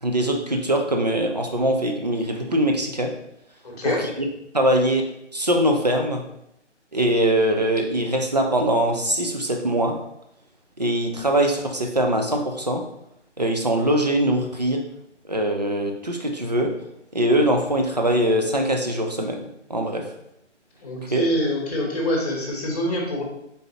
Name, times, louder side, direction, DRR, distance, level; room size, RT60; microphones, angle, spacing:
voice 1, 0.0-3.1 3.8-4.0 4.5-5.0 5.3-6.2 6.9-10.0 10.8-12.8 13.4-14.8 15.3-16.7 17.1-19.4 19.7-20.0 21.1-21.2, right 1 dB, 35° right, 2 dB, 0.4 m, -22 dB
voice 2, 3.6-4.0 20.8-23.2, equal, 35° left, -1 dB, 1.1 m, -25 dB
3.9 x 3.6 x 2.8 m, 0.78 s
figure-of-eight pair, 150°, 36 cm